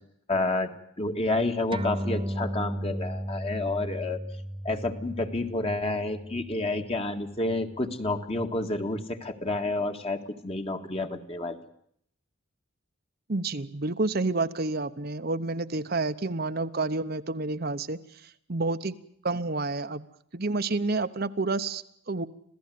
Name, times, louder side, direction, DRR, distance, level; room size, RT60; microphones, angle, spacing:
voice 1, 0.3-0.7 1.0-4.2 4.6-11.6, left 2 dB, 30° left, 6 dB, 1.9 m, -29 dB
sound 1, 1.7-8.6, equal, 25° right, 1.0 m, -36 dB
voice 2, 13.3-18.0 18.5-18.9 19.2-20.1 20.3-22.3, right 3 dB, 50° right, 9 dB, 0.9 m, -29 dB
26.5 x 16.5 x 9.4 m, 0.69 s
head